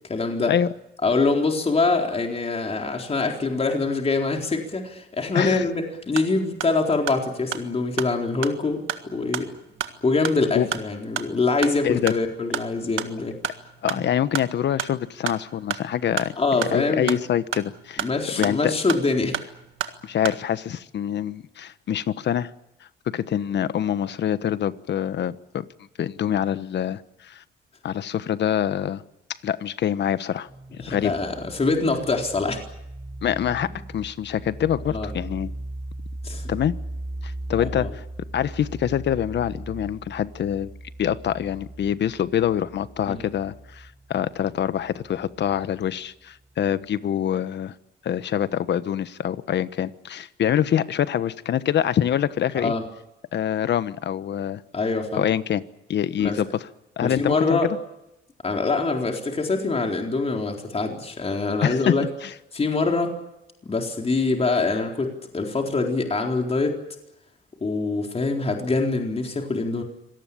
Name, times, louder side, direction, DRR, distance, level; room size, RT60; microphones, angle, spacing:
voice 1, 0.1-0.5 1.0-9.5 10.0-13.4 13.9-14.0 16.4-17.2 18.0-19.4 30.8-32.6 34.9-35.1 36.2-36.5 37.7-37.9 43.1-43.2 52.5-52.8 54.7-55.2 56.2-56.4 57.0-57.7 58.4-62.0 62.5-63.1 63.6-66.7 67.6-69.8, left 3 dB, 30° left, 2 dB, 4.1 m, -24 dB
voice 2, 5.3-5.6 10.5-10.7 11.8-12.1 13.8-18.1 18.3-18.7 20.0-22.5 23.1-25.7 26.0-27.4 27.8-29.0 29.4-31.1 33.2-35.5 36.5-36.7 37.2-38.0 38.3-40.7 41.0-47.7 48.0-52.7 53.3-54.6 55.1-55.6 55.9-56.7 57.0-57.6 61.6-61.9 62.2-62.3, left 9 dB, 60° left, 14 dB, 1.2 m, -25 dB
sound 1, 6.0-20.4, right 10 dB, 80° right, 1.8 m, -34 dB
sound 2, 30.5-45.9, right 1 dB, 15° right, 1.7 m, -38 dB
26.0 x 18.0 x 8.7 m, 0.88 s
cardioid pair, 90°, 20 cm